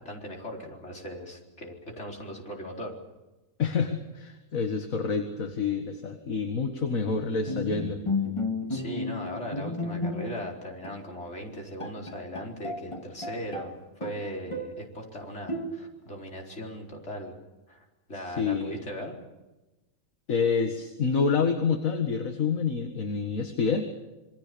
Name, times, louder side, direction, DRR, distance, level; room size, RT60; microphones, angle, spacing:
voice 1, 0.0-2.9 8.7-17.4 17.7-19.2, equal, 50° left, 0 dB, 4.8 m, -39 dB
voice 2, 3.6-8.0 18.4-18.8 20.3-23.9, left 5 dB, 70° left, 5 dB, 2.2 m, -27 dB
Bowed string instrument, 7.5-10.5 10.8-11.0 11.5-11.6 11.8-13.7 14.0-14.8 15.5-16.1, left 2 dB, 20° left, 2.1 m, -33 dB
27.0 x 23.5 x 7.0 m, 1.1 s
omnidirectional pair, 1.5 m